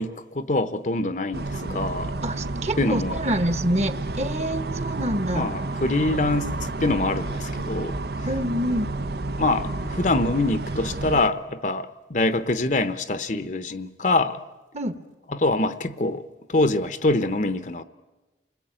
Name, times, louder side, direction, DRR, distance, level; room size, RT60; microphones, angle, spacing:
voice 1, 0.0-2.1 2.8-3.2 5.3-8.3 9.4-14.4 15.3-16.2 16.5-17.8, left 2 dB, 45° left, 0.9 m, -25 dB
sound 1, 1.3-11.3, right 2 dB, 65° right, 0.8 m, -30 dB
voice 2, 2.2-5.5 8.3-8.9 14.7-14.9, equal, 40° right, 1.3 m, -26 dB
29.0 x 20.5 x 8.9 m
head